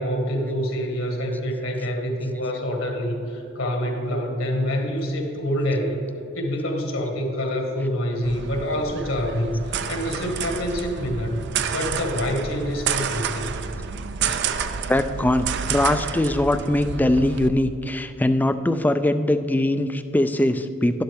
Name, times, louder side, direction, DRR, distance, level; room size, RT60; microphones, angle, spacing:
voice 1, 0.0-6.0 6.3-11.5 11.7-13.5, equal, 70° left, 2 dB, 1.8 m, -26 dB
sound 1, 8.2-17.5, right 6 dB, 55° right, 0.5 m, -29 dB
voice 2, 14.9-21.0, left 1 dB, 10° left, 10 dB, 0.3 m, -21 dB
11.5 x 11.5 x 3.5 m, 2.8 s
head